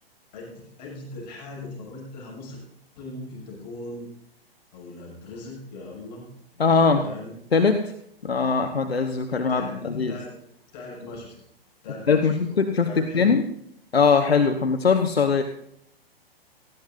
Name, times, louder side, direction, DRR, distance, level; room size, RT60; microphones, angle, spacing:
voice 1, 0.3-2.6 3.0-4.1 4.7-6.3 6.5-7.4 9.3-10.3 10.7-11.3 11.8-13.4, left 2 dB, 45° left, -2 dB, 7.0 m, -39 dB
voice 2, 6.6-7.0 7.5-7.8 8.2-10.2 12.1-13.4 13.9-15.4, left 5 dB, 75° left, 6 dB, 1.1 m, -21 dB
18.5 x 15.0 x 2.7 m, 0.75 s
figure-of-eight pair, 120°, 30 cm